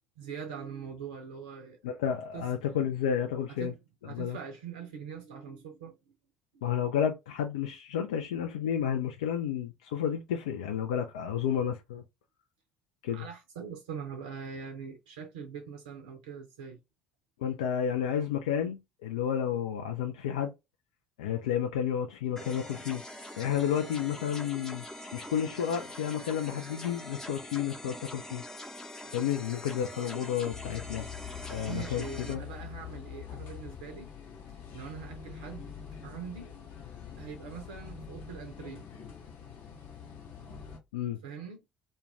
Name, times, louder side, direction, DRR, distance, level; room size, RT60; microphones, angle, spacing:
voice 1, 0.2-2.0 2.3-2.5 3.5-3.8 4.0-6.1 13.1-16.8 31.7-34.1 34.7-35.7 36.0-36.6 37.2-39.2 41.2-41.6, right 7 dB, 70° right, 0.5 m, -43 dB
voice 2, 1.8-3.7 4.1-4.4 6.6-12.0 13.0-13.3 17.4-20.5 21.2-23.0 23.4-24.9 25.1-28.4 29.0-31.0 31.5-32.4 40.9-41.2, left 9 dB, 70° left, 0.3 m, -31 dB
sound 1, 22.4-32.4, left 1 dB, 15° left, 0.7 m, -44 dB
sound 2, 30.5-40.8, left 8 dB, 55° left, 0.8 m, -44 dB
2.3 x 2.1 x 3.1 m
figure-of-eight pair, 55°, 4 cm